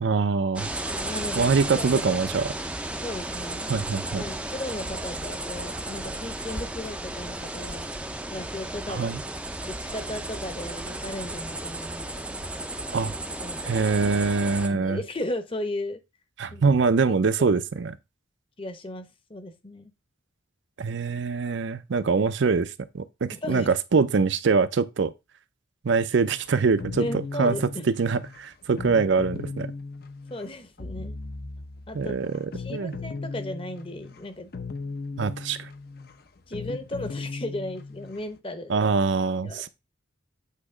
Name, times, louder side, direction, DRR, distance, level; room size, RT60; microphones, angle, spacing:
voice 1, 0.0-0.7 1.4-2.5 3.7-4.2 8.9-9.2 12.9-13.1 13.6-15.0 16.4-18.0 20.8-25.1 25.8-27.6 28.0-29.7 31.9-32.5 32.7-33.0 35.2-35.7 38.7-39.7, right 4 dB, 70° right, 0.5 m, -24 dB
sound 1, 0.6-14.7, right 1 dB, 5° right, 0.4 m, -34 dB
voice 2, 0.9-1.4 1.8-2.0 2.4-2.5 3.0-3.8 4.2-7.8 8.3-9.1 9.7-12.4 13.4-13.7 14.7-16.0 16.5-16.6 17.1-17.2 17.4-17.6 18.6-19.9 23.3-23.7 27.0-27.9 30.3-31.2 31.9-32.1 32.5-34.5 36.5-38.7 39.4-39.7, left 1 dB, 25° left, 0.9 m, -36 dB
sound 2, 26.2-38.4, left 3 dB, 50° left, 0.6 m, -37 dB
8.4 x 2.9 x 4.9 m
head